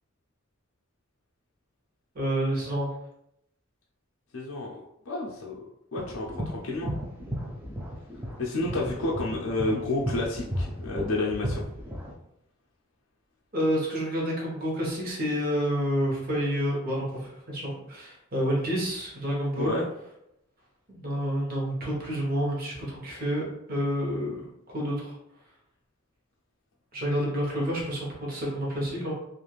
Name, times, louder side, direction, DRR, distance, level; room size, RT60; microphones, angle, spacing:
voice 1, 2.1-2.9 13.5-19.8 21.0-25.1 26.9-29.1, equal, 45° right, -3 dB, 0.9 m, -29 dB
voice 2, 4.3-5.6 5.9-6.9 8.4-11.6 19.6-19.9, left 2 dB, 65° left, -3 dB, 0.4 m, -30 dB
sound 1, 6.0-12.1, equal, 10° right, 0.4 m, -34 dB
3.1 x 2.4 x 2.4 m, 0.79 s
head